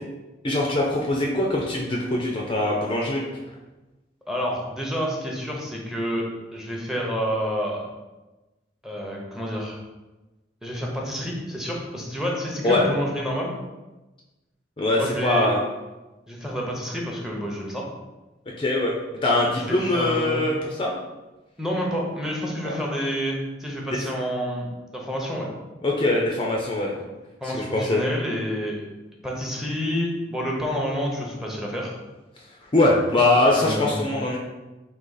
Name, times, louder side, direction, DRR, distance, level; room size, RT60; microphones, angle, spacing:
voice 1, 0.4-3.4 12.6-12.8 14.8-15.6 18.6-19.0 19.2-20.9 22.6-22.7 25.8-27.0 27.4-28.0 32.6-34.4, left 2 dB, 30° left, -2 dB, 0.5 m, -22 dB
voice 2, 4.3-7.8 8.8-9.8 10.6-13.5 14.9-15.5 16.3-17.8 19.5-20.5 21.6-25.5 27.4-28.8 29.2-31.9 33.6-34.0, equal, 5° right, -2 dB, 0.7 m, -29 dB
4.0 x 2.8 x 3.9 m, 1.1 s
head